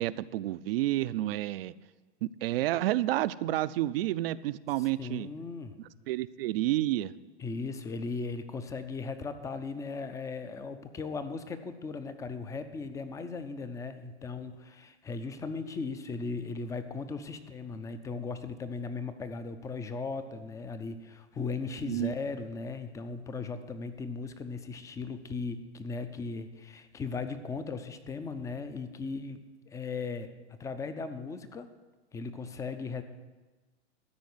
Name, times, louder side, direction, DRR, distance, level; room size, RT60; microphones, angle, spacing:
voice 1, 0.0-1.7 2.2-5.3 6.1-7.1 21.9-22.1, right 15 dB, 60° right, 16 dB, 0.5 m, -30 dB
voice 2, 4.8-5.8 7.4-31.7 32.1-33.0, left 4 dB, 10° left, 10 dB, 0.4 m, -37 dB
13.0 x 4.9 x 7.9 m, 1.3 s
hypercardioid pair, 125°, 34 cm